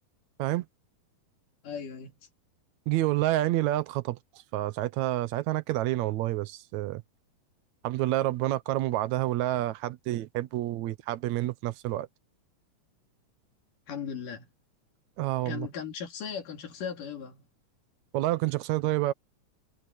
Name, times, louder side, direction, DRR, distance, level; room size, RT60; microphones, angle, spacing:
voice 1, 1.6-2.1 13.9-14.5 15.4-17.4, left 7 dB, 90° left, 4.3 m, -37 dB
voice 2, 2.9-4.2 4.5-7.0 7.8-12.1 15.2-15.7 18.1-19.1, right 16 dB, 70° right, 2.0 m, -28 dB
omnidirectional pair, 3.6 m